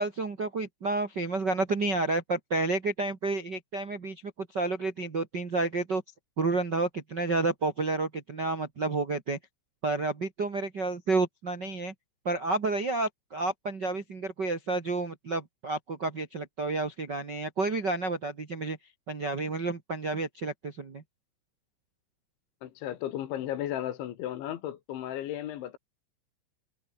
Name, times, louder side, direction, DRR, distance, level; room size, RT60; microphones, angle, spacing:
voice 1, 0.0-6.0 6.4-9.4 9.8-11.9 12.2-18.8 19.1-21.0, right 3 dB, 65° right, 1.0 m, -30 dB
voice 2, 22.6-25.8, left 12 dB, 70° left, 4.0 m, -35 dB
omnidirectional pair, 5.8 m